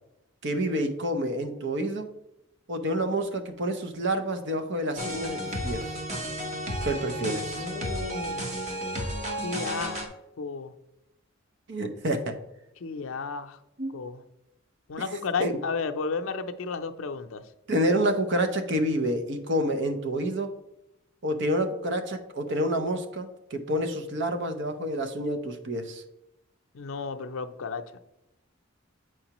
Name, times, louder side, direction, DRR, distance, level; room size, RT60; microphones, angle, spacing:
voice 1, 0.4-2.1 2.7-6.0 6.8-7.7 11.7-12.4 13.8-13.9 15.4-15.6 17.7-20.5 21.2-26.0, equal, 60° right, 7 dB, 0.8 m, -28 dB
sound 1, 5.0-10.1, equal, 35° right, 1.2 m, -32 dB
voice 2, 7.5-8.5 9.4-10.1 10.4-10.7 12.8-13.6 13.9-14.2 14.9-17.4 26.7-28.0, left 4 dB, 85° left, 8 dB, 0.5 m, -33 dB
7.8 x 4.7 x 3.0 m, 0.89 s
head